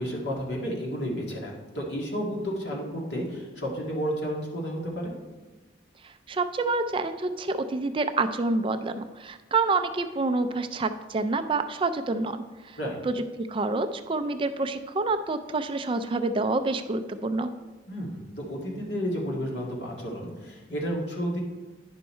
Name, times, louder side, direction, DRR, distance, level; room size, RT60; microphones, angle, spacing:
voice 1, 0.0-5.1 12.8-13.0 17.9-21.4, equal, 75° left, -2 dB, 2.0 m, -31 dB
voice 2, 6.0-12.8 13.0-17.5, right 3 dB, 30° right, 9 dB, 0.4 m, -28 dB
10.0 x 5.5 x 4.3 m, 1.3 s
head